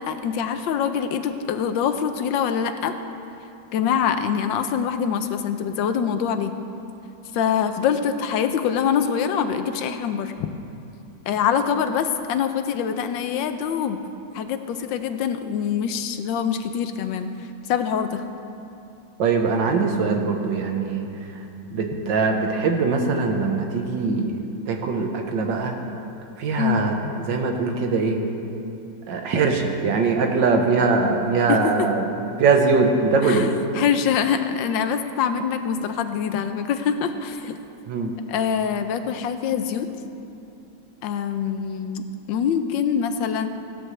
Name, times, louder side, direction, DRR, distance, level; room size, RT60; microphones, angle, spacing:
voice 1, 0.0-2.9 3.7-6.5 7.3-10.5 11.3-14.0 14.3-17.3 17.7-18.2 26.6-26.8 31.5-31.9 33.2-37.6 38.3-39.9 41.0-43.5, left 7 dB, 85° left, 9 dB, 1.4 m, -24 dB
voice 2, 19.2-21.1 21.7-25.8 26.4-28.2 29.1-32.1 32.4-33.5 37.9-38.1, right 4 dB, 75° right, 3 dB, 1.7 m, -22 dB
16.0 x 12.5 x 3.3 m, 2.7 s
omnidirectional pair, 2.0 m